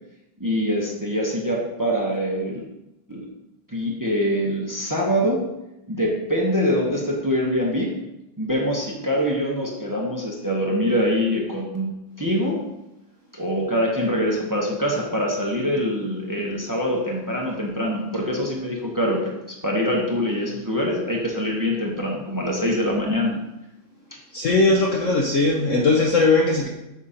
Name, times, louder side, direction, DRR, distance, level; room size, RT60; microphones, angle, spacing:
voice 1, 0.4-2.6 3.1-3.3 3.7-5.4 5.9-7.9 8.4-12.6 13.3-19.3 19.6-23.4, equal, 25° right, -2 dB, 0.4 m, -24 dB
voice 2, 24.3-26.7, left 3 dB, 60° left, -1 dB, 0.8 m, -19 dB
6.5 x 4.2 x 5.0 m, 0.92 s
omnidirectional pair, 2.2 m